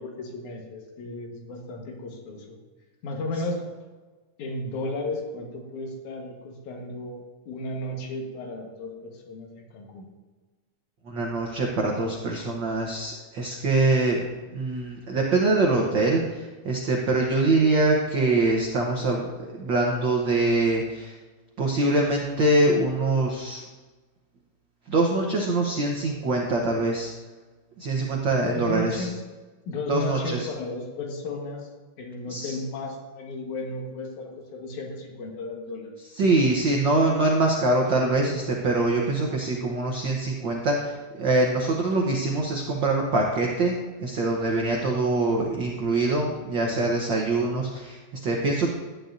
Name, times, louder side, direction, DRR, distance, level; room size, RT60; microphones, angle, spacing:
voice 1, 0.0-2.6 3.0-3.6 4.4-10.1 28.3-29.2 29.7-31.7 32.0-35.9 46.3-47.0, left 2 dB, 75° left, 1 dB, 2.8 m, -34 dB
voice 2, 11.1-14.2 14.5-19.2 19.6-21.1 21.6-23.6 24.9-27.1 27.8-29.1 29.9-30.5 32.3-32.5 36.2-48.7, right 2 dB, 75° right, -1 dB, 1.0 m, -24 dB
12.5 x 10.0 x 2.6 m, 1.3 s
omnidirectional pair, 3.5 m